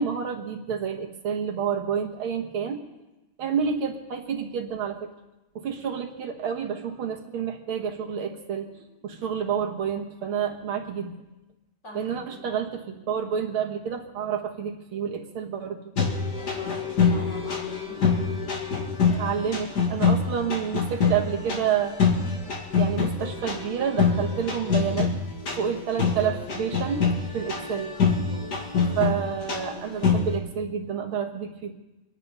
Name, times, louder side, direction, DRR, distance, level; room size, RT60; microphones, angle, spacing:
voice 1, 0.0-2.8 3.4-5.1 5.6-11.1 11.9-15.9 19.2-22.0 22.8-25.1 25.5-27.1 27.3-27.9 29.0-31.7, right 7 dB, 70° right, 3 dB, 2.1 m, -29 dB
voice 2, 11.8-12.4 16.3-18.2 28.7-29.1 29.4-30.1, left 2 dB, 30° left, -1 dB, 4.0 m, -44 dB
sound 1, 16.0-30.4, left 5 dB, 50° left, 2.3 m, -26 dB
25.5 x 10.0 x 5.5 m, 1.0 s
omnidirectional pair, 2.4 m